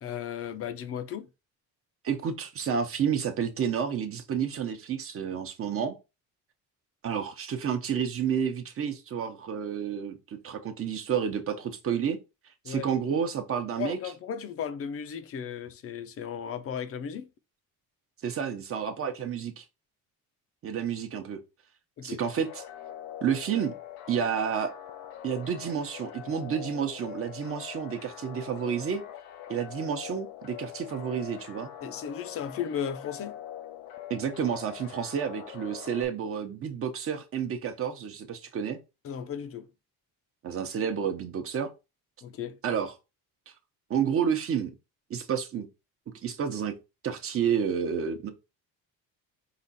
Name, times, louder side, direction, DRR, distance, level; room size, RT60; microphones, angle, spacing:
voice 1, 0.0-1.3 12.6-12.9 13.8-17.3 22.0-22.2 31.8-33.4 39.0-39.7 42.2-42.6, left 8 dB, 40° left, 0.6 m, -35 dB
voice 2, 2.0-5.9 7.0-12.2 12.7-14.0 18.2-19.6 20.6-21.4 22.0-22.6 23.2-23.7 24.1-24.7 25.2-29.0 29.5-31.7 34.1-38.8 40.4-41.7 42.6-42.9 43.9-44.7 45.1-45.7 46.2-46.7 47.0-48.3, right 7 dB, 35° right, 0.8 m, -30 dB
sound 1, 22.2-36.1, left 11 dB, 90° left, 0.7 m, -43 dB
4.9 x 2.4 x 4.1 m
cardioid pair, 155°, 37 cm